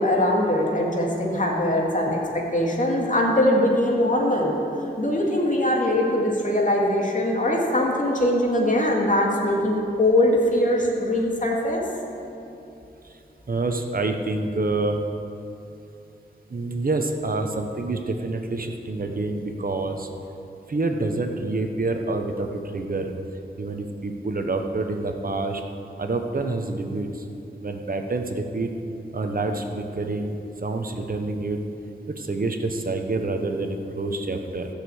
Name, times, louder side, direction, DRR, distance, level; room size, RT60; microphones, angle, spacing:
voice 1, 0.0-4.5 5.0-11.8, left 1 dB, 45° left, -2 dB, 2.3 m, -22 dB
voice 2, 13.5-15.0 16.5-20.1 20.7-23.1 23.6-25.6 26.0-27.1 27.6-28.7 29.1-30.3 30.6-31.6 32.2-34.7, right 2 dB, 50° right, 5 dB, 1.1 m, -27 dB
14.0 x 6.7 x 8.1 m, 2.7 s
wide cardioid pair, 90°, 18 cm